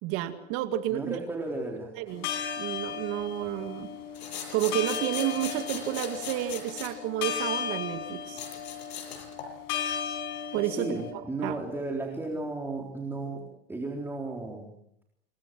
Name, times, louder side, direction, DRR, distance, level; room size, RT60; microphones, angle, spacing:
voice 1, 0.0-1.2 1.9-2.3 2.6-3.9 4.5-8.4 10.5-11.6, right 12 dB, 45° right, 9 dB, 2.2 m, -31 dB
voice 2, 0.9-1.9 10.6-14.7, right 2 dB, 5° right, 0 dB, 3.8 m, -34 dB
sound 1, 2.1-11.1, left 8 dB, 50° left, 5.6 m, -36 dB
sound 2, 4.1-6.9 8.3-9.5, left 7 dB, 80° left, 7.9 m, -39 dB
28.0 x 22.0 x 7.6 m, 0.76 s
supercardioid pair, 135°, 32 cm